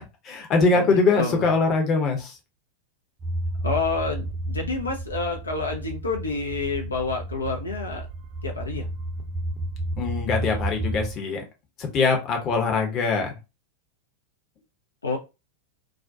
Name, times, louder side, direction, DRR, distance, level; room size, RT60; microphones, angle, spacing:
voice 1, 0.0-2.3 10.0-11.4 11.8-13.4, left 4 dB, 30° left, 0.7 m, -23 dB
voice 2, 0.7-1.5 3.6-8.1 8.4-8.9 15.0-15.2, left 3 dB, 75° left, 0.4 m, -28 dB
sound 1, 3.2-11.2, right 1 dB, 25° right, 0.6 m, -32 dB
2.3 x 2.2 x 2.5 m
figure-of-eight pair, 90°, 0 cm